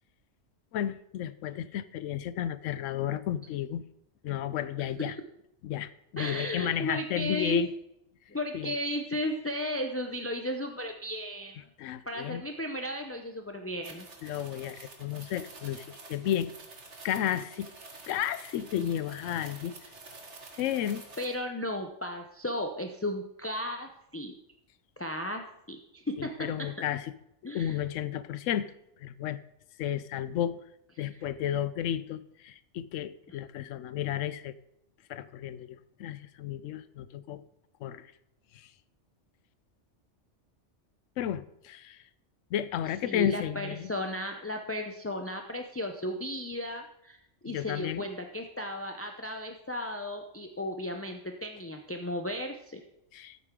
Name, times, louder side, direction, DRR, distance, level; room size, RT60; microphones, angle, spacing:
voice 1, 0.7-3.8 4.2-5.2 5.6-7.7 8.5-8.7 11.8-12.4 14.2-16.5 17.0-17.7 18.1-19.7 20.6-21.0 26.2-27.1 27.4-28.7 29.0-29.4 29.8-30.6 31.0-34.5 35.1-37.4 37.8-38.1 38.5-38.7 41.2-42.0 42.5-43.9 47.5-48.0 53.1-53.4, left 10 dB, 85° left, 15 dB, 0.9 m, -33 dB
voice 2, 6.2-7.6 8.3-11.7 12.1-14.1 20.5-20.6 21.2-24.3 25.0-26.3 27.4-27.8 43.0-47.2 47.4-52.8, left 1 dB, 20° left, 4 dB, 0.4 m, -35 dB
sound 1, 13.8-21.3, right 3 dB, 65° right, 1.8 m, -49 dB
13.5 x 7.9 x 3.7 m, 0.81 s
omnidirectional pair, 1.3 m